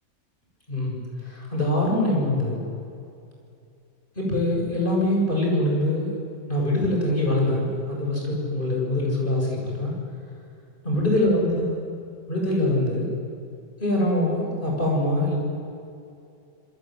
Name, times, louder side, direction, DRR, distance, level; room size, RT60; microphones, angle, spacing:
voice 1, 0.7-2.6 4.2-6.1 6.5-9.9 10.8-11.8 12.3-13.1 13.8-15.4, left 1 dB, 30° left, -2 dB, 7.8 m, -24 dB
27.0 x 23.0 x 9.5 m, 2.6 s
omnidirectional pair, 1.8 m